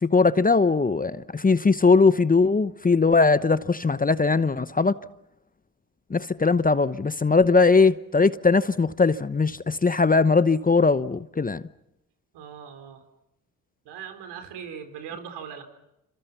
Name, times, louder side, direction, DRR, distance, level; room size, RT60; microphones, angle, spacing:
voice 1, 0.0-5.0 6.1-11.6, left 4 dB, 20° left, 1.0 m, -20 dB
voice 2, 12.3-13.0 13.8-15.6, right 7 dB, 75° right, 4.7 m, -39 dB
29.0 x 26.5 x 5.7 m
hypercardioid pair, 55°, 41 cm